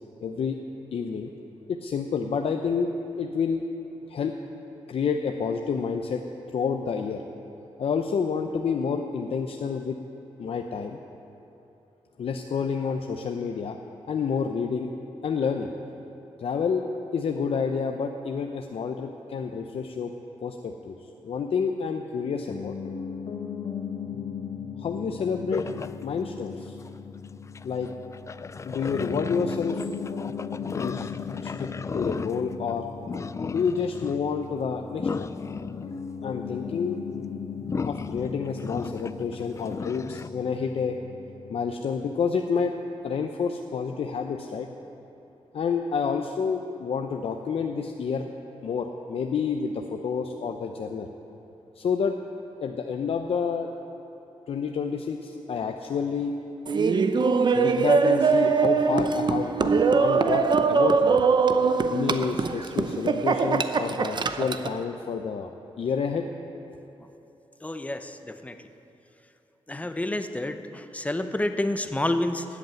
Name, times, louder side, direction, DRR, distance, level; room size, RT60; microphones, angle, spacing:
voice 1, 0.2-0.6 0.9-1.3 1.7-2.9 3.2-3.6 4.1-4.3 4.9-6.2 6.5-7.2 7.8-10.0 10.4-11.0 12.2-13.8 14.1-14.9 15.2-15.7 16.4-16.8 17.1-20.1 20.4-21.0 21.2-22.7 24.8-25.6 26.0-26.8 27.6-27.9 28.6-29.8 30.8-31.1 31.4-32.9 33.5-35.3 36.2-37.0 37.9-41.0 41.5-42.7 43.0-44.7 45.5-48.3 48.6-51.1 51.8-52.2 52.6-53.7 54.5-56.3 57.5-61.2 61.9-65.5 65.8-66.3, left 6 dB, 70° left, 4 dB, 0.7 m, -29 dB
Piano, 22.5-41.9, left 6 dB, 85° left, 1.4 m, -38 dB
sound 1, 25.5-26.0 26.8-26.9 27.5-32.7 33.1-34.2 34.9-36.4 37.7-40.3, left 4 dB, 30° left, 0.3 m, -35 dB
Laughter, 56.7-64.8, right 5 dB, 50° right, 0.6 m, -22 dB
voice 2, 67.6-68.5 69.7-72.5, left 1 dB, 15° left, 9 dB, 0.8 m, -29 dB
13.5 x 8.4 x 9.0 m, 2.9 s
cardioid pair, 90°, 10 cm